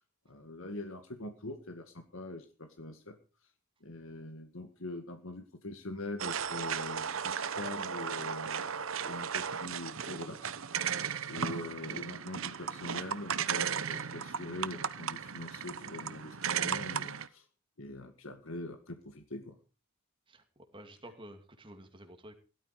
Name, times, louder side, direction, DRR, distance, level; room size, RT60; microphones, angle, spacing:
voice 1, 0.3-3.2 3.8-8.7 9.0-10.5 11.3-17.5 17.8-19.6, left 2 dB, 65° left, 6 dB, 1.9 m, -43 dB
sound 1, 6.2-17.3, right 7 dB, 65° right, 0.9 m, -36 dB
voice 2, 20.7-22.3, right 1 dB, 25° right, 6 dB, 2.6 m, -50 dB
17.0 x 12.5 x 5.0 m, 0.35 s
head